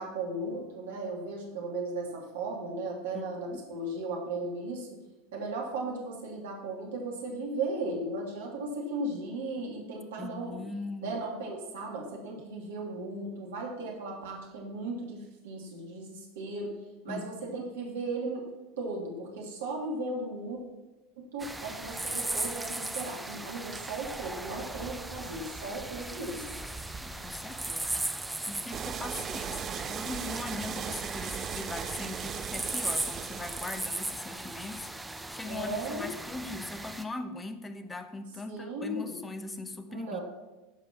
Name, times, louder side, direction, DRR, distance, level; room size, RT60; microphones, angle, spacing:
voice 1, 0.0-4.9 5.3-10.6 11.0-16.7 17.0-18.4 18.8-20.6 21.2-26.6 35.4-36.1 38.5-39.2 39.9-40.2, right 2 dB, 65° right, 0 dB, 2.5 m, -36 dB
voice 2, 10.2-11.1 17.1-17.7 27.0-28.1 28.5-34.9 35.3-40.2, left 3 dB, 15° left, 10 dB, 1.0 m, -40 dB
sound 1, 21.4-37.0, right 2 dB, 5° right, 0.8 m, -37 dB
sound 2, 28.7-34.2, right 9 dB, 35° right, 0.4 m, -38 dB
13.5 x 5.2 x 6.0 m, 1.1 s
figure-of-eight pair, 80°, 0 cm